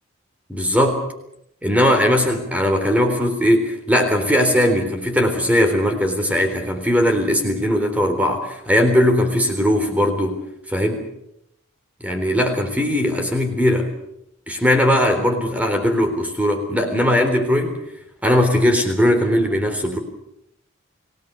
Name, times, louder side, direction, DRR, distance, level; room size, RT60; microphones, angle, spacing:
voice 1, 0.5-1.0 1.6-10.4 10.7-11.1 12.0-13.9 14.5-17.8 18.2-20.0, equal, 5° right, 5 dB, 3.8 m, -19 dB
29.5 x 18.0 x 6.9 m, 0.79 s
head